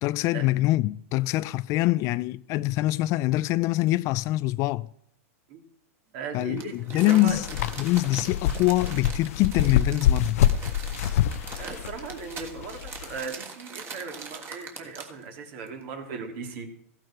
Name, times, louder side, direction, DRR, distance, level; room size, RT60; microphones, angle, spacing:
voice 1, 0.0-4.9 6.3-7.5 7.8-10.4, left 17 dB, 40° left, 0.4 m, -24 dB
voice 2, 6.1-7.4 11.6-16.7, right 5 dB, 55° right, 3.4 m, -37 dB
Crumpling crinkling, 6.6-15.2 15.7-15.8, right 5 dB, 30° right, 3.1 m, -42 dB
sound 1, 7.3-13.2, left 10 dB, 70° left, 0.7 m, -26 dB
16.0 x 11.5 x 4.6 m
hypercardioid pair, 125°, 8 cm